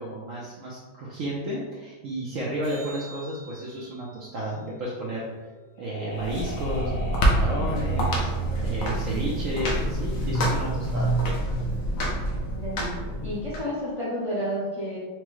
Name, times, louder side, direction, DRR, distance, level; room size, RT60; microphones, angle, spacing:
voice 1, 0.0-5.3 5.8-8.3 8.6-11.1, right 1 dB, 70° right, -4 dB, 0.8 m, -32 dB
sound 1, 2.6-7.1 13.6-13.7, right 3 dB, 40° right, 0.9 m, -50 dB
sound 2, 5.2-9.8, equal, 85° left, 1.3 m, -40 dB
sound 3, 6.1-13.6, right 1 dB, 65° left, 1.0 m, -26 dB
voice 2, 9.1-9.5 12.5-12.9 13.2-15.0, equal, 25° left, -8 dB, 0.7 m, -31 dB
4.5 x 2.0 x 3.0 m, 1.3 s
omnidirectional pair, 1.8 m